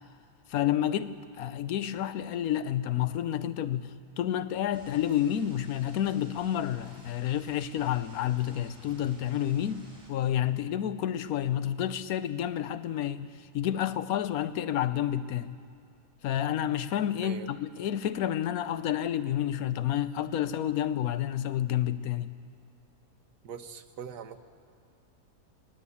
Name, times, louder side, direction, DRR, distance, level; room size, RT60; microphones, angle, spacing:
voice 1, 0.5-15.6 16.2-22.3, left 11 dB, 70° left, 1.1 m, -30 dB
sound 1, 4.7-10.1, right 1 dB, 20° right, 3.7 m, -54 dB
voice 2, 23.4-24.4, right 8 dB, 80° right, 1.6 m, -41 dB
20.0 x 19.5 x 8.5 m
omnidirectional pair, 1.7 m